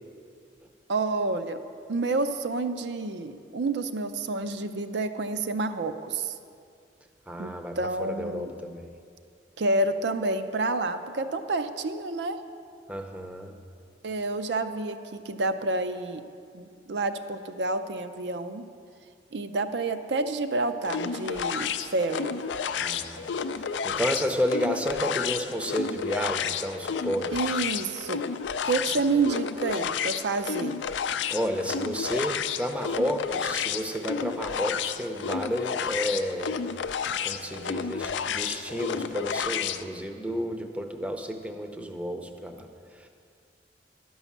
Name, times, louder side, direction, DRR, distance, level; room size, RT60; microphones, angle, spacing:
voice 1, 0.9-1.6 1.9-6.4 7.4-8.5 9.6-12.4 14.0-16.2 16.5-18.6 19.3-22.3 27.3-28.2 28.6-30.8, right 3 dB, 70° right, 10 dB, 0.5 m, -29 dB
voice 2, 7.3-8.9 12.9-13.6 22.8-27.3 31.3-36.6 37.2-43.1, equal, 5° right, 5 dB, 0.6 m, -31 dB
sound 1, 20.8-39.8, left 7 dB, 80° left, 0.4 m, -31 dB
12.0 x 5.5 x 7.2 m, 2.4 s
head